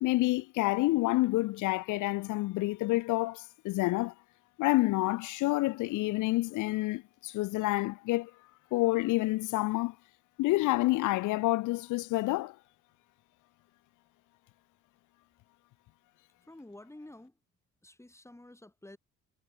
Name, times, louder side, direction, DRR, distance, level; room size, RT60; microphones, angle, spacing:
voice 1, 0.0-4.1 4.6-8.3 8.7-9.9 10.4-12.6, left 19 dB, 85° left, 0.5 m, -28 dB
voice 2, 16.4-17.4 17.8-19.0, left 1 dB, 10° left, 3.7 m, -50 dB
cardioid pair, 90°, 30 cm